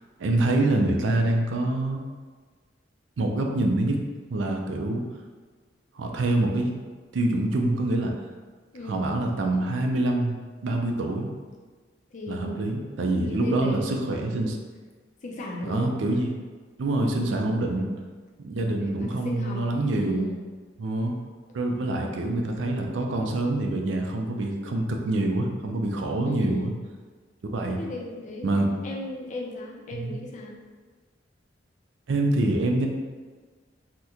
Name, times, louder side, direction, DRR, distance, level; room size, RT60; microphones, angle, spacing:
voice 1, 0.2-2.0 3.2-4.0 4.3-5.0 6.0-6.7 7.1-8.1 8.9-11.3 12.3-14.6 15.6-16.4 16.8-17.9 18.4-20.3 20.8-21.2 21.5-26.7 27.4-27.8 28.4-28.7 29.9-30.2 32.1-32.9, right 2 dB, 80° right, 2 dB, 0.4 m, -25 dB
voice 2, 8.7-9.1 12.1-14.4 15.2-16.0 17.2-17.7 18.7-20.5 26.2-26.7 27.8-28.5 28.8-30.6, equal, 40° left, -1 dB, 0.5 m, -37 dB
2.9 x 2.1 x 3.6 m, 1.4 s
head